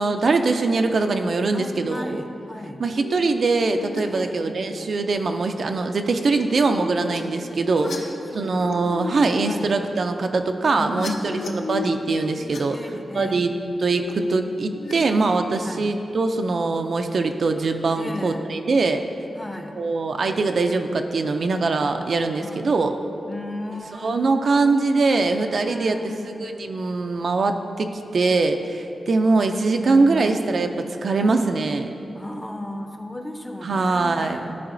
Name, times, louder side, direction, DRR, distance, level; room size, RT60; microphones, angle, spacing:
voice 1, 0.0-2.2 2.8-7.9 8.3-12.8 13.1-19.0 19.8-22.9 24.0-26.0 26.4-31.9 33.6-34.4, right 3 dB, 60° right, 6 dB, 0.3 m, -22 dB
voice 2, 1.5-2.8 4.1-4.5 7.8-8.0 8.3-9.0 9.4-9.7 10.6-11.7 12.7-13.4 15.6-15.9 18.0-18.5 19.3-19.7 22.4-25.0 25.6-26.3 29.8-30.7 32.1-34.6, left 1 dB, 10° left, 4 dB, 0.6 m, -35 dB
sound 1, 2.5-4.0 4.4-4.8 5.8-12.6 13.5-14.9 15.3-15.7 16.8-17.3 17.6-18.2 18.8-19.0 20.4-20.7 21.1-21.5, left 3 dB, 75° left, 0.6 m, -36 dB
11.5 x 4.8 x 2.6 m, 2.7 s
wide cardioid pair, 95°, 0 cm